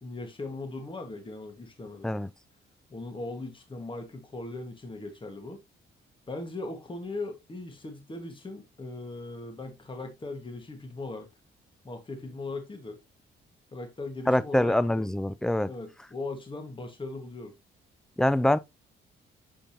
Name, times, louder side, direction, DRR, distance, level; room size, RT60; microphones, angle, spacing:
voice 1, 0.0-2.1 2.9-5.6 6.3-11.3 11.8-13.0 13.7-14.7 15.7-17.5, left 2 dB, 25° left, 1.6 m, -39 dB
voice 2, 14.3-15.7 18.2-18.6, left 1 dB, 5° left, 0.4 m, -24 dB
6.9 x 5.2 x 2.8 m
cardioid pair, 90°, 20 cm